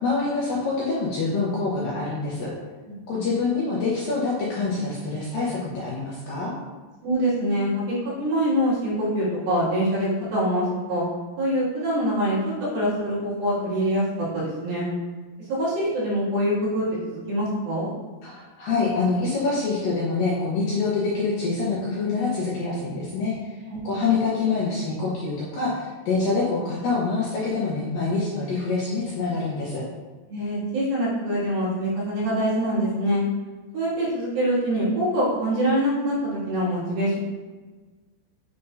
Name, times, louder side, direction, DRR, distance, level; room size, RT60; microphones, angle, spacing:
voice 1, 0.0-2.5 3.1-6.5 18.2-23.5 23.8-29.8, left 4 dB, 70° left, -6 dB, 2.3 m, -26 dB
voice 2, 7.0-11.0 11.4-14.0 14.3-14.9 15.5-17.9 23.7-24.0 30.3-33.2 33.7-37.2, equal, 60° right, -9 dB, 4.0 m, -24 dB
9.2 x 5.3 x 2.7 m, 1.3 s
omnidirectional pair, 5.1 m